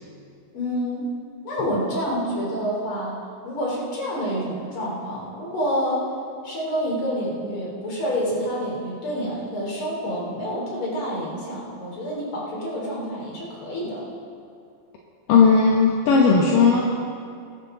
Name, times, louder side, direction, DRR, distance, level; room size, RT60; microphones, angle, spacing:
voice 1, 0.5-1.1 1.4-3.2 3.4-6.0 6.4-14.0, equal, 30° left, -4 dB, 3.8 m, -28 dB
voice 2, 15.3-16.8, left 5 dB, 70° left, -2 dB, 2.1 m, -16 dB
21.5 x 12.0 x 3.9 m, 2.3 s
omnidirectional pair, 5.3 m